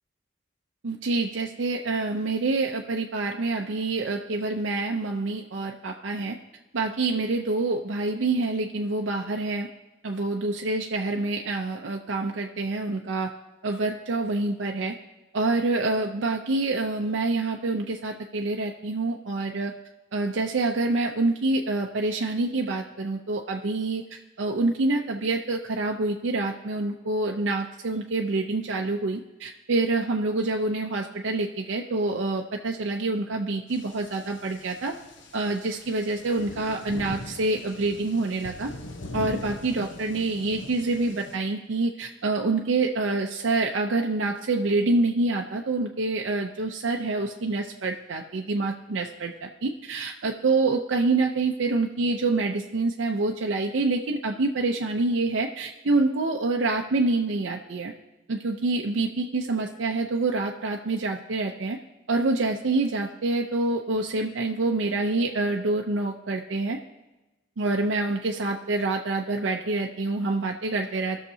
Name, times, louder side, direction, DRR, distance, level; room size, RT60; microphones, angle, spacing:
voice 1, 0.8-6.4 6.7-9.7 10.0-13.3 13.6-14.9 15.3-19.7 20.1-34.9 35.3-38.7 39.1-57.9 58.3-61.8 62.1-66.8 67.6-71.2, right 3 dB, 80° right, 2 dB, 0.6 m, -26 dB
sound 1, 33.7-41.3, left 2 dB, 75° left, 0.9 m, -41 dB
18.5 x 6.5 x 2.7 m, 1.1 s
head